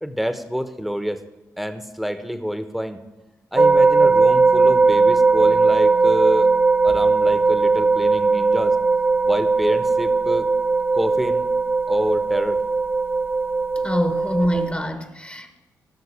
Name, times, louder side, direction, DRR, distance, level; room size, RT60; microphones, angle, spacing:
voice 1, 0.0-1.2 1.6-3.0 3.5-6.5 6.8-8.8 9.2-10.5 10.9-11.5 11.9-12.6, equal, ahead, 9 dB, 1.2 m, -27 dB
sound 1, 3.6-14.7, right 3 dB, 30° right, 0.9 m, -18 dB
voice 2, 13.8-15.6, equal, 15° left, 7 dB, 1.3 m, -25 dB
16.5 x 6.4 x 5.1 m, 1.1 s
supercardioid pair, 45°, 7 cm